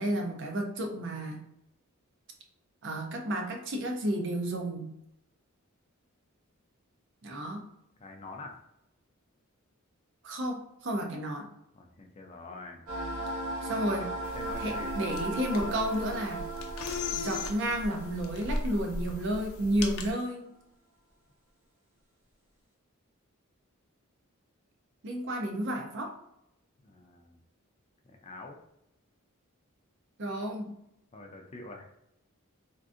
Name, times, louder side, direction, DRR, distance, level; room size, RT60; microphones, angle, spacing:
voice 1, 0.0-1.4 2.8-4.9 7.2-7.7 10.2-11.5 13.6-14.1 14.6-16.5 17.1-20.5 25.0-26.1 30.2-30.8, right 1 dB, 55° right, 3 dB, 0.6 m, -32 dB
voice 2, 8.0-8.6 11.7-12.8 13.7-13.9 14.3-14.9 26.8-27.4 28.0-28.6 31.1-31.8, left 2 dB, 30° left, 2 dB, 0.4 m, -45 dB
sound 1, 12.9-19.2, right 1 dB, 80° right, 1.2 m, -37 dB
sound 2, 14.2-20.1, left 2 dB, 85° left, 0.5 m, -37 dB
3.6 x 2.5 x 2.4 m, 0.80 s
head